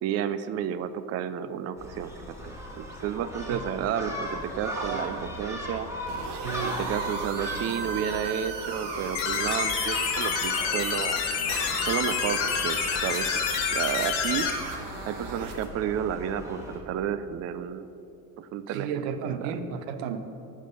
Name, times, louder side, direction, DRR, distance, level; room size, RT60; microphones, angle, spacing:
voice 1, 0.0-5.9 6.6-11.2 11.9-13.4 13.7-14.5 15.1-17.9 18.4-19.1 19.4-19.5, right 9 dB, 35° right, 13 dB, 0.4 m, -31 dB
Gull seagull, 1.8-16.8, equal, 5° right, 1.9 m, -38 dB
voice 2, 3.5-3.9 4.6-5.1 6.3-6.7 18.7-20.2, right 7 dB, 80° right, 10 dB, 0.7 m, -33 dB
sound 1, 6.1-10.7 11.5-15.7, right 4 dB, 55° right, 1.3 m, -37 dB
sound 2, 9.1-14.5, left 7 dB, 65° left, 1.2 m, -28 dB
12.0 x 4.5 x 5.0 m, 2.8 s
hypercardioid pair, 55°, 48 cm